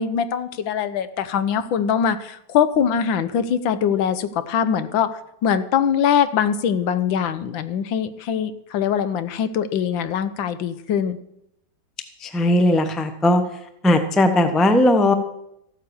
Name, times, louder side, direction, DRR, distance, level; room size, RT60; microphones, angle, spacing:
voice 1, 0.0-11.2, left 8 dB, 80° left, 13 dB, 1.6 m, -22 dB
voice 2, 12.2-13.4 13.8-15.1, left 1 dB, ahead, 8 dB, 0.5 m, -17 dB
14.0 x 9.1 x 7.0 m, 0.81 s
omnidirectional pair, 2.1 m